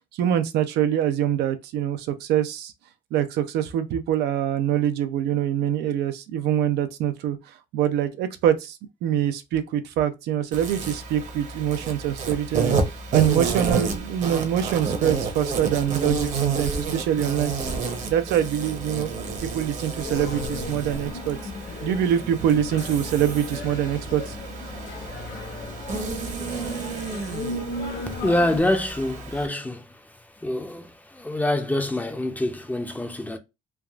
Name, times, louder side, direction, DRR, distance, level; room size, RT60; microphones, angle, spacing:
voice 1, 0.1-2.7 3.1-7.4 7.7-12.8 13.1-17.8 18.1-19.1 19.4-21.4 21.8-24.4, right 10 dB, 75° right, 0.5 m, -24 dB
Insect, 10.5-29.5, right 4 dB, 45° right, 0.8 m, -30 dB
sound 1, 20.0-28.6, left 2 dB, 55° left, 1.2 m, -35 dB
voice 2, 28.2-29.9 30.4-33.4, left 1 dB, 10° left, 0.5 m, -25 dB
3.4 x 2.3 x 2.3 m
cardioid pair, 110°, 17 cm